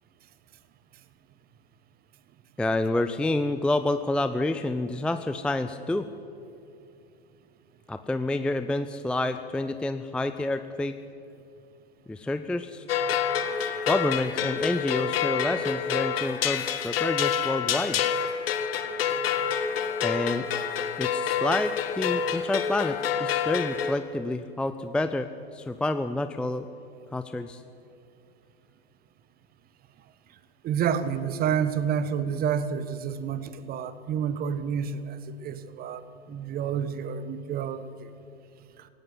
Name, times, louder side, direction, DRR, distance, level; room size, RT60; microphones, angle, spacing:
voice 1, 2.6-6.1 7.9-10.9 12.1-12.8 13.9-18.0 20.0-20.5 21.0-26.7 27.1-27.6, left 2 dB, 5° left, 10 dB, 0.5 m, -28 dB
sound 1, 12.9-24.0, left 7 dB, 65° left, 1.8 m, -28 dB
voice 2, 30.6-36.0 36.3-37.8, right 7 dB, 30° right, 13 dB, 1.5 m, -29 dB
18.5 x 17.0 x 9.6 m, 2.7 s
hypercardioid pair, 105°, 31 cm